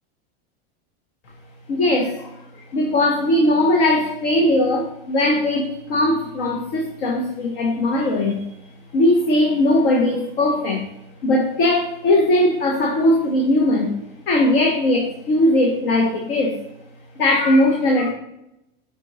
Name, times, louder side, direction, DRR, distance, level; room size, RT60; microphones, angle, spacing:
voice 1, 1.7-2.4 2.7-8.4 8.9-10.9 11.2-14.0 14.3-16.6 17.2-18.1, left 1 dB, 70° left, 1 dB, 1.3 m, -19 dB
6.1 x 4.5 x 4.1 m, 0.84 s
supercardioid pair, 145°, 30 cm